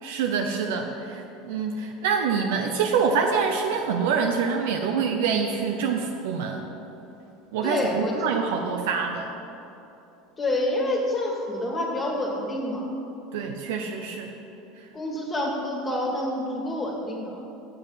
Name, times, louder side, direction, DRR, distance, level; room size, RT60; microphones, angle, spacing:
voice 1, 0.0-6.6 7.5-9.3 13.3-14.3, right 6 dB, 80° right, 3 dB, 0.6 m, -26 dB
voice 2, 7.6-8.3 10.4-12.9 14.9-17.4, left 1 dB, 25° left, -1 dB, 1.7 m, -28 dB
7.0 x 6.5 x 5.5 m, 3.0 s
supercardioid pair, 100°, 0 cm